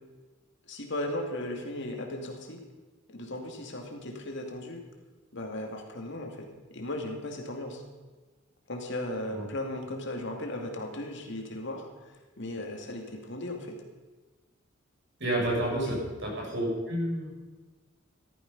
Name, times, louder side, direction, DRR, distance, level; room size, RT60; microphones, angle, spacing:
voice 1, 0.7-2.6 3.1-4.8 5.3-7.8 8.7-11.9 12.4-13.8 15.9-16.0, left 1 dB, 60° left, 2 dB, 2.4 m, -36 dB
voice 2, 15.2-17.3, right 1 dB, 60° right, -2 dB, 6.1 m, -30 dB
15.5 x 13.0 x 5.4 m, 1.2 s
head